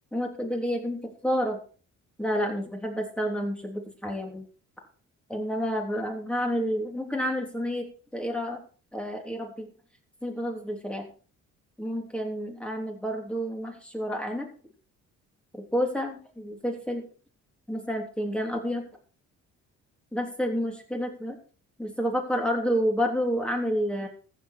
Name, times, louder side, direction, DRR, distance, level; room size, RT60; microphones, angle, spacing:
voice 1, 0.1-1.6 2.2-4.4 5.3-7.9 8.1-8.6 8.9-9.7 10.2-11.1 11.8-14.5 15.6-17.0 17.7-18.9 20.1-21.4 21.8-24.1, equal, 5° left, 2 dB, 3.4 m, -29 dB
14.5 x 7.6 x 4.5 m, 0.40 s
cardioid pair, 90°, 30 cm